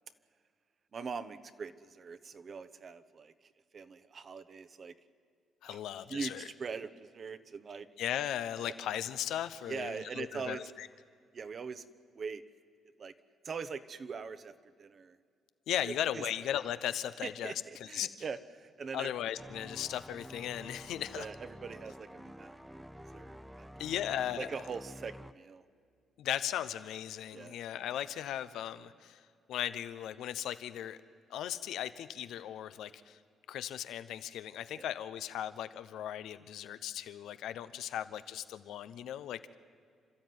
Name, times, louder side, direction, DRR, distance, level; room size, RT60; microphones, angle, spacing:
voice 1, 0.9-4.9 5.6-5.8 6.1-7.9 8.7-8.8 9.6-10.7 11.3-11.8 12.1-12.4 13.0-13.1 13.4-15.2 16.1-16.2 17.2-19.1 21.1-22.8 23.1-23.9 24.4-25.6 27.3-27.6 34.7-34.9, right 5 dB, 45° right, 12 dB, 1.1 m, -42 dB
voice 2, 5.6-6.5 8.0-10.9 15.7-18.1 18.9-21.3 23.8-24.5 26.2-29.2 29.5-31.0 31.3-33.2 33.5-39.6, left 11 dB, 80° left, 13 dB, 0.9 m, -37 dB
sound 1, 19.4-25.3, equal, 5° right, 0.7 m, -49 dB
29.0 x 13.0 x 9.5 m, 2.2 s
cardioid pair, 90°, 0 cm